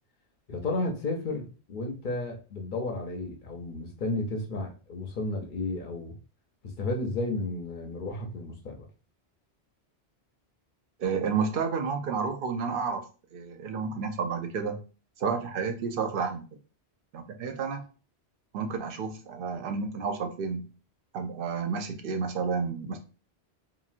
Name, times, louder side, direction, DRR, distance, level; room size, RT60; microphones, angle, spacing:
voice 1, 0.5-6.2 6.6-8.9, left 2 dB, 55° left, 2 dB, 0.7 m, -33 dB
voice 2, 11.0-13.0 13.3-14.8 15.2-16.5 17.1-17.8 18.5-20.7 21.1-23.0, right 5 dB, 60° right, 6 dB, 0.7 m, -31 dB
3.0 x 2.5 x 2.5 m, 0.35 s
omnidirectional pair, 1.1 m